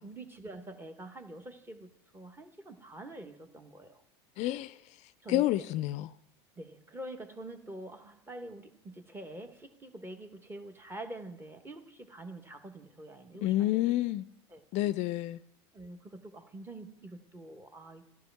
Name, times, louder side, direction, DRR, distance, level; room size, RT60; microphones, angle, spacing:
voice 1, 0.0-4.0 5.2-5.4 6.6-13.9 14.5-14.6 15.7-18.1, right 1 dB, 15° right, 1.3 m, -46 dB
voice 2, 4.4-4.8 5.3-6.1 13.4-14.2 14.7-15.4, left 15 dB, 50° left, 0.4 m, -29 dB
13.5 x 11.5 x 3.5 m
supercardioid pair, 105°, 15 cm